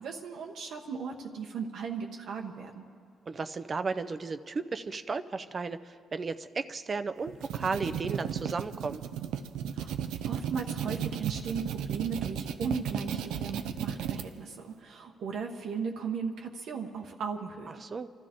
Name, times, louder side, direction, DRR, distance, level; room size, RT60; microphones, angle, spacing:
voice 1, 0.0-2.7 9.8-9.9 10.2-17.8, right 6 dB, 75° right, 1 dB, 1.1 m, -36 dB
voice 2, 3.3-9.0 17.8-18.1, right 4 dB, 35° right, 11 dB, 0.5 m, -34 dB
sound 1, 7.2-14.2, right 9 dB, 90° right, 0.6 m, -34 dB
28.5 x 12.5 x 3.7 m, 2.2 s
cardioid pair, 90°, 0 cm